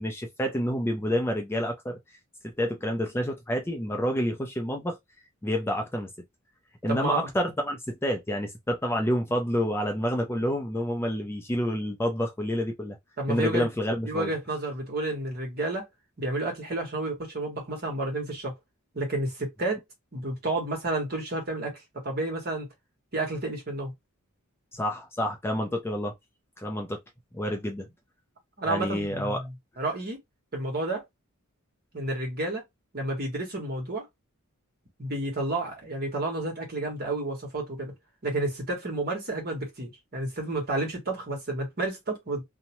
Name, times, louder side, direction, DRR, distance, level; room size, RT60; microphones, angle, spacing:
voice 1, 0.0-2.0 2.4-5.0 5.4-6.1 6.8-13.0 13.3-14.3 24.7-26.1 26.6-27.0 27.3-27.9 28.7-29.4, equal, 10° left, 0.4 m, -28 dB
voice 2, 6.9-7.3 13.2-13.7 14.0-15.9 16.2-18.5 18.9-19.8 20.1-22.7 23.1-23.9 28.6-30.2 30.5-31.0 31.9-32.6 32.9-34.1 35.0-37.9 38.2-42.4, right 2 dB, 45° right, 1.3 m, -31 dB
2.8 x 2.1 x 2.9 m
head